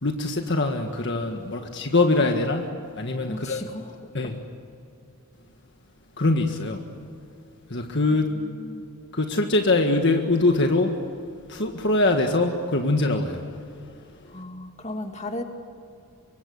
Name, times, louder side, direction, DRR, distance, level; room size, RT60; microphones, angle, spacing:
voice 1, 0.0-2.7 3.0-3.6 4.1-4.3 6.2-6.8 7.7-8.3 9.1-10.9 11.5-13.5, left 2 dB, 55° left, 3 dB, 1.7 m, -23 dB
voice 2, 3.3-4.3 8.1-8.8 14.3-15.4, left 1 dB, 30° left, 4 dB, 2.4 m, -36 dB
25.5 x 24.0 x 8.2 m, 2.5 s
head